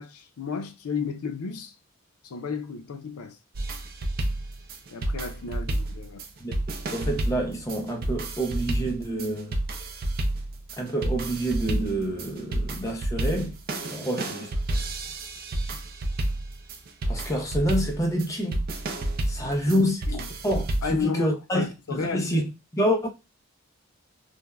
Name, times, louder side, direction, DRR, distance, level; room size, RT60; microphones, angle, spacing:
voice 1, 0.0-1.7 2.2-3.4 4.9-6.2 13.9-14.1 19.4-20.3 20.8-22.5, left 5 dB, 90° left, 0.5 m, -33 dB
sound 1, 3.5-21.0, right 1 dB, 45° right, 0.4 m, -30 dB
voice 2, 6.4-9.6 10.8-13.6 13.9-14.5 17.1-18.6 19.3-20.0 20.4-22.4 22.7-23.1, equal, 15° left, 0.5 m, -27 dB
3.3 x 2.0 x 2.2 m
head